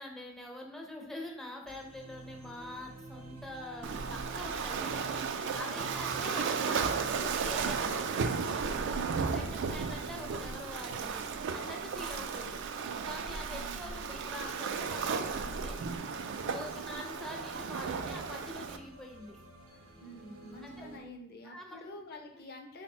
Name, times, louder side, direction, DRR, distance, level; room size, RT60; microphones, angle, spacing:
voice 1, 0.0-5.0 5.5-8.3 9.1-11.2 11.5-12.6 13.0-15.8 16.5-19.4 20.8-20.9 21.4-21.8 22.1-22.2, left 1 dB, ahead, 0 dB, 0.5 m, -45 dB
sound 1, 1.7-21.0, right 2 dB, 80° right, 0.7 m, -51 dB
Wind instrument woodwind instrument, 3.6-7.4, left 7 dB, 90° left, 0.7 m, -54 dB
Waves surf, 3.8-18.8, right 5 dB, 60° right, 0.3 m, -34 dB
voice 2, 5.5-5.9 9.4-9.8 13.5-14.0 20.0-22.8, left 1 dB, 50° left, 3 dB, 0.6 m, -49 dB
3.8 x 2.1 x 4.2 m, 0.73 s
head